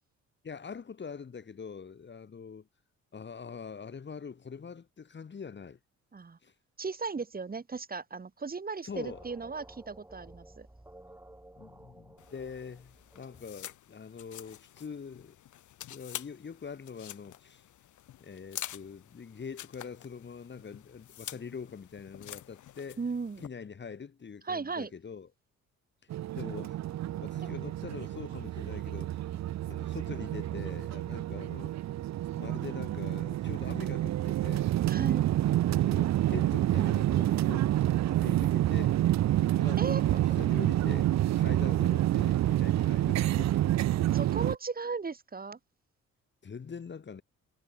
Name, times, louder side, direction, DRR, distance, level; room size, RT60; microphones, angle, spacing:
voice 1, 0.4-2.7 3.1-5.8 6.4-6.5 8.8-9.2 11.6-15.4 15.9-17.6 18.2-23.0 23.4-25.3 26.0-26.8 27.2-29.2 29.7-31.7 32.4-34.7 35.4-39.0 39.3-43.8 46.4-47.2, left 6 dB, 35° left, 2.5 m, -44 dB
voice 2, 6.8-10.7 23.0-23.4 24.4-24.9 34.9-35.2 39.8-40.0 44.1-45.6, right 4 dB, 30° right, 3.1 m, -36 dB
sound 1, 8.9-13.6, right 1 dB, 10° right, 7.4 m, -53 dB
sound 2, 12.2-23.5, left 12 dB, 75° left, 6.1 m, -47 dB
sound 3, 26.1-44.6, right 13 dB, 60° right, 0.7 m, -28 dB
cardioid pair, 90°, 30 cm